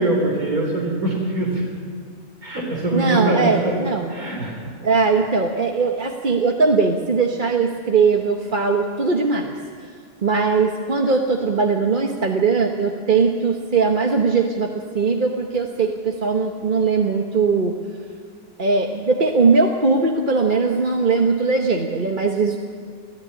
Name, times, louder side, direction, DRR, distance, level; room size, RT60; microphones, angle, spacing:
voice 1, 0.0-1.6 2.4-3.8 4.1-4.6, right 2 dB, 70° right, -2 dB, 4.5 m, -22 dB
voice 2, 2.9-4.1 4.8-9.5 10.2-17.7 18.6-22.6, right 4 dB, 35° right, 2 dB, 1.3 m, -20 dB
29.0 x 15.0 x 9.8 m, 2.1 s
omnidirectional pair, 1.6 m